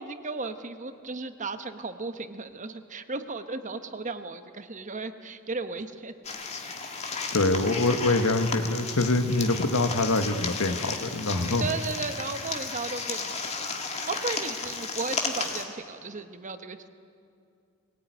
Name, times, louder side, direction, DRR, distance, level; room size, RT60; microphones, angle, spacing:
voice 1, 0.0-6.1 11.6-13.7 14.1-16.9, right 3 dB, 35° right, 9 dB, 1.1 m, -35 dB
sound 1, 6.2-15.6, left 4 dB, 30° left, 2.0 m, -34 dB
voice 2, 7.3-11.7, left 2 dB, 85° left, 7 dB, 1.5 m, -25 dB
22.0 x 18.5 x 9.4 m, 2.4 s
head